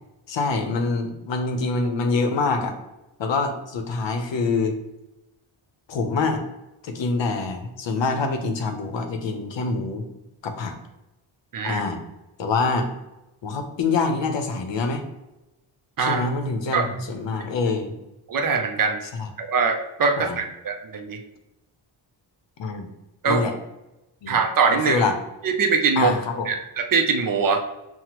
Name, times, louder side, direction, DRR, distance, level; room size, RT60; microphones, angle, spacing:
voice 1, 0.3-2.8 3.2-4.8 5.9-6.4 6.8-10.1 10.4-10.7 11.6-12.0 12.4-12.9 13.4-15.0 16.0-18.0 19.1-19.3 20.2-20.4 22.6-22.9 23.3-23.5 24.2-24.4 24.9-25.1 26.0-26.5, left 4 dB, 65° left, 5 dB, 0.7 m, -25 dB
voice 2, 18.3-19.0 19.4-21.2 23.2-23.4 24.3-25.0 25.4-26.1 26.5-27.6, right 5 dB, 45° right, 5 dB, 0.5 m, -22 dB
5.8 x 2.1 x 3.0 m, 0.95 s
wide cardioid pair, 110°, 48 cm